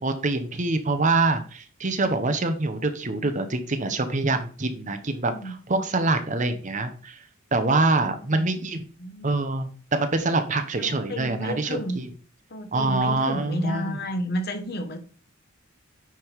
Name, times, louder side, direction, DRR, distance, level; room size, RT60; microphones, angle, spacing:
voice 1, 0.0-7.2 7.5-8.8 9.2-12.1 12.7-13.9, right 2 dB, 35° right, 8 dB, 0.8 m, -25 dB
voice 2, 5.0-5.6 8.2-8.7 9.0-9.3 10.8-12.0 12.5-15.0, equal, 50° left, 7 dB, 1.2 m, -32 dB
9.2 x 3.5 x 4.6 m, 0.41 s
head